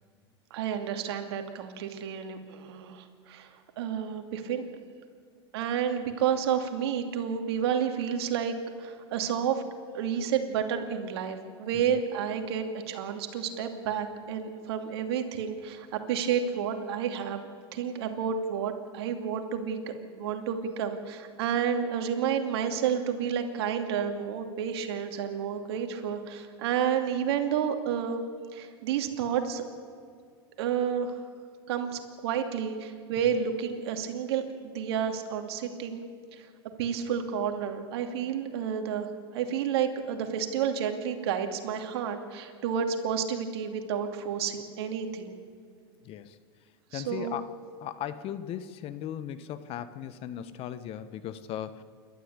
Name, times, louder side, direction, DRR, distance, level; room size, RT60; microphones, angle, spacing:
voice 1, 0.5-4.6 5.5-9.6 9.9-17.4 17.7-28.2 28.5-29.6 30.6-31.2 31.7-36.0 36.3-36.5 36.8-45.3 46.9-47.4, right 8 dB, 70° right, 5 dB, 2.6 m, -30 dB
voice 2, 46.0-46.4 46.9-47.5 47.8-51.8, left 10 dB, 45° left, 13 dB, 1.3 m, -37 dB
28.5 x 12.5 x 8.3 m, 2.2 s
hypercardioid pair, 110°, 14 cm